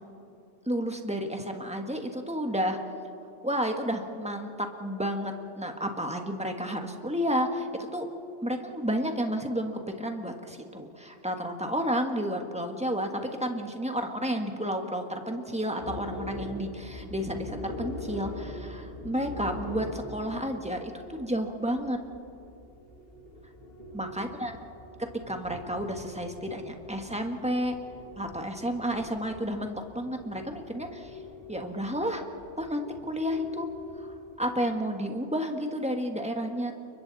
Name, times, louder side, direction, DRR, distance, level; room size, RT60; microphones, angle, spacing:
voice 1, 0.7-2.8 3.4-8.1 8.4-22.0 23.9-24.6 25.3-27.7 28.2-31.2 31.5-32.2 32.6-33.7 34.0-36.7, equal, 5° right, 4 dB, 1.6 m, -31 dB
sound 1, 15.8-34.5, left 1 dB, 55° left, 2.1 m, -43 dB
30.0 x 23.5 x 4.2 m, 2.8 s
omnidirectional pair, 1.2 m